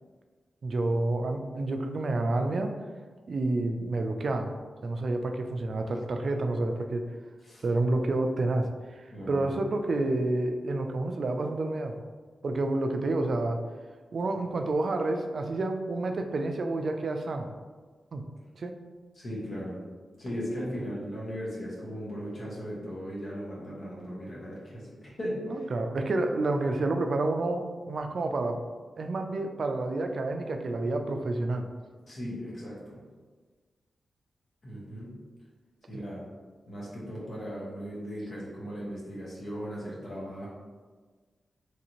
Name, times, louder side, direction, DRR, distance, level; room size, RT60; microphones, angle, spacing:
voice 1, 0.6-2.7 3.3-4.5 4.8-7.1 7.6-11.9 12.4-13.6 14.1-17.5 18.1-18.2 18.6-18.7 25.5-28.6 29.0-31.7 35.9-36.0, right 2 dB, 65° right, 5 dB, 0.3 m, -29 dB
voice 2, 7.4-7.8 9.1-9.5 19.1-19.8 20.2-25.7 32.1-33.0 34.6-35.1 35.9-36.3 36.7-40.5, equal, 55° left, -6 dB, 1.1 m, -37 dB
3.2 x 2.6 x 2.9 m, 1.4 s
cardioid pair, 65°, 0 cm